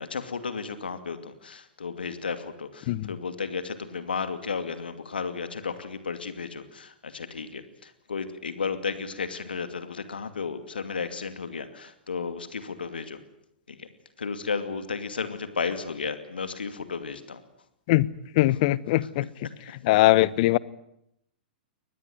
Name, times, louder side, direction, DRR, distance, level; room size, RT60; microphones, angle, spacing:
voice 1, 0.0-13.2 13.7-13.9 14.2-17.4 19.0-19.1, left 5 dB, 80° left, 2.5 m, -33 dB
voice 2, 18.4-19.3 19.8-20.6, left 18 dB, 50° left, 1.0 m, -21 dB
23.5 x 20.0 x 9.3 m
figure-of-eight pair, 110°, 5 cm